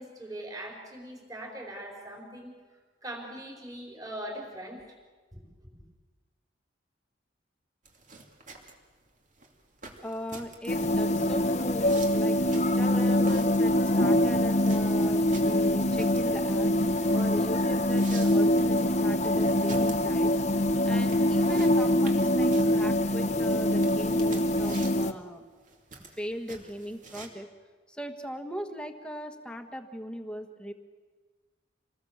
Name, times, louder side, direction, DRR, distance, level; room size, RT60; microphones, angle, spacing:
voice 1, 0.0-2.5 3.0-4.8 5.3-5.7, right 1 dB, 20° right, -1 dB, 4.7 m, -41 dB
sound 1, 7.9-27.3, right 3 dB, 45° right, 2.7 m, -48 dB
voice 2, 10.0-16.7 17.1-20.3 20.8-25.4 26.0-27.5 27.9-30.7, equal, 5° left, 6 dB, 1.5 m, -39 dB
sound 2, 10.7-25.1, left 1 dB, 40° left, 1.0 m, -24 dB
27.0 x 19.5 x 7.3 m, 1.4 s
head